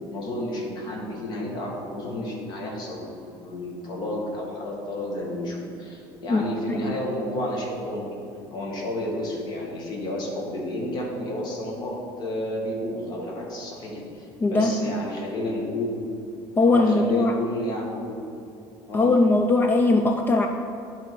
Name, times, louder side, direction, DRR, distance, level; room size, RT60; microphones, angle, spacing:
voice 1, 0.1-8.1 8.5-16.1 16.6-18.2 18.9-19.1, left 1 dB, 45° left, -2 dB, 1.7 m, -31 dB
voice 2, 14.4-14.9 16.6-17.3 18.9-20.5, left 2 dB, 20° left, 4 dB, 0.3 m, -20 dB
11.0 x 3.8 x 4.6 m, 2.7 s
cardioid pair, 140°, 10 cm